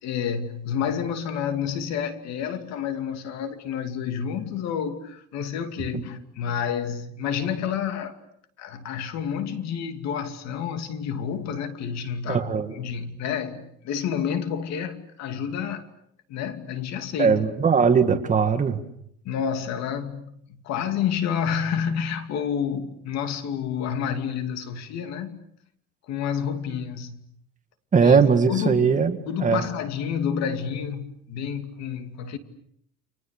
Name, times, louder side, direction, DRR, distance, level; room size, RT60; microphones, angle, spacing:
voice 1, 0.0-8.2 8.6-12.5 12.8-15.9 16.3-17.4 19.2-20.4 20.6-25.5 26.1-27.3 28.0-28.2 28.5-28.9 29.3-32.4, left 8 dB, 60° left, 2.7 m, -29 dB
voice 2, 12.3-12.7 17.2-18.8 27.9-29.7, right 6 dB, 25° right, 2.0 m, -20 dB
30.0 x 27.5 x 6.7 m
cardioid pair, 150°, 30 cm